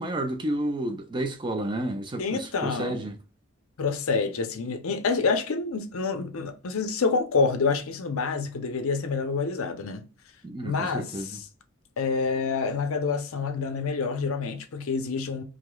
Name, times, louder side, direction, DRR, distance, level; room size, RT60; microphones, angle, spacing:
voice 1, 0.0-3.2 10.4-11.4, right 1 dB, 20° right, 0.4 m, -31 dB
voice 2, 2.2-3.1 3.8-10.0 10.6-11.5 12.0-15.4, left 4 dB, 70° left, 0.6 m, -27 dB
4.8 x 2.0 x 2.2 m
head